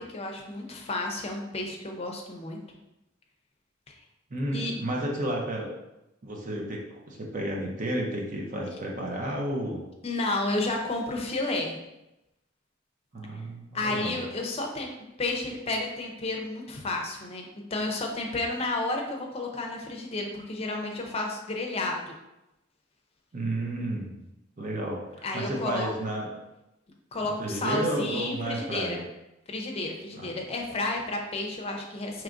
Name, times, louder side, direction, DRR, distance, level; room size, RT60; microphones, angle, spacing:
voice 1, 0.0-2.6 4.5-4.7 10.0-11.8 13.7-14.9 15.2-22.2 25.2-25.9 27.1-29.0 29.5-32.2, left 2 dB, 30° left, 2 dB, 0.6 m, -31 dB
voice 2, 4.3-5.7 6.2-9.8 13.1-14.2 23.3-24.2 24.6-26.3 27.2-29.0 30.1-30.3, right 1 dB, 40° right, -1 dB, 0.7 m, -32 dB
4.7 x 3.0 x 2.5 m, 0.92 s
head